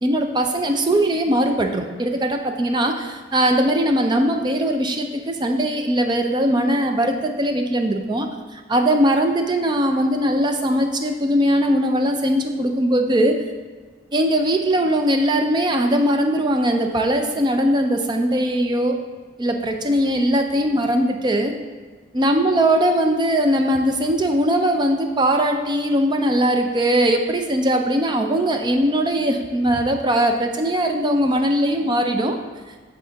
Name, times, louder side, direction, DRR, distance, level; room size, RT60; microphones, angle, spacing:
voice 1, 0.0-13.4 14.1-19.0 19.4-21.5 22.1-32.4, right 1 dB, 25° right, 5 dB, 0.4 m, -20 dB
7.8 x 3.7 x 3.9 m, 1.4 s
head